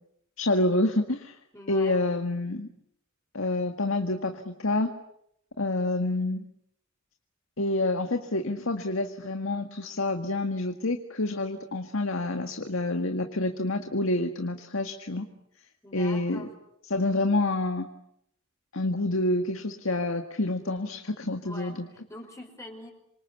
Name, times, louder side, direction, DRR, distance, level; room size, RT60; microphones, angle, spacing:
voice 1, 0.4-1.4 1.7-2.7 3.3-4.9 5.6-6.4 7.6-15.3 15.9-16.5 16.9-17.9 18.7-21.9, left 2 dB, 85° left, 5 dB, 1.9 m, -28 dB
voice 2, 1.5-1.9 15.8-16.5 21.4-22.9, left 1 dB, 15° left, 2 dB, 5.0 m, -44 dB
28.0 x 25.0 x 8.3 m, 0.75 s
head